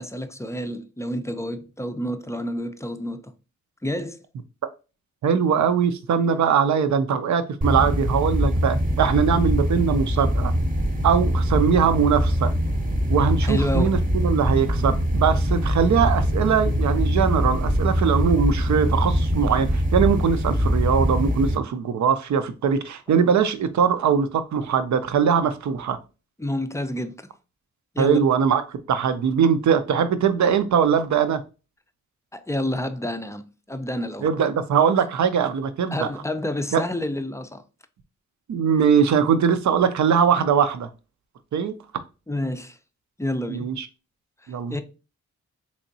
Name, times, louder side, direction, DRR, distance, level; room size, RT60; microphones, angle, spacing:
voice 1, 0.0-3.3 3.8-4.2 13.4-13.9 26.4-27.3 27.9-28.2 32.3-34.3 35.9-37.6 42.3-42.8 43.2-43.7 44.4-44.8, left 1 dB, 10° left, 0.4 m, -29 dB
voice 2, 5.2-10.5 11.0-12.5 13.1-26.0 28.0-31.4 34.2-36.1 36.7-36.8 38.5-40.9 41.5-41.7 43.5-43.9 44.5-44.8, right 7 dB, 65° right, 0.5 m, -21 dB
sound 1, 7.6-21.6, equal, 25° right, 0.8 m, -23 dB
3.4 x 3.0 x 2.6 m
cardioid pair, 50°, 31 cm